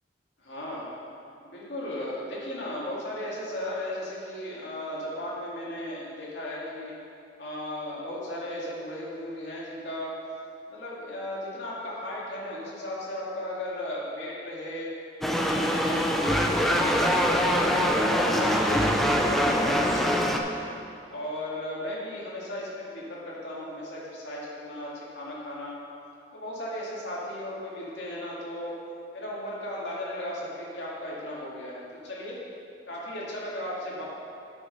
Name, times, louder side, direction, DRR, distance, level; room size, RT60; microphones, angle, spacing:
voice 1, 0.4-0.9 1.4-7.0 7.4-10.2 10.7-14.9 15.3-20.3 21.1-25.8 26.3-28.8 29.1-32.4 32.9-34.0, left 1 dB, 80° left, -6 dB, 2.1 m, -35 dB
sound 1, 15.2-20.4, equal, ahead, 0.5 m, -24 dB
8.6 x 5.6 x 5.4 m, 2.6 s
head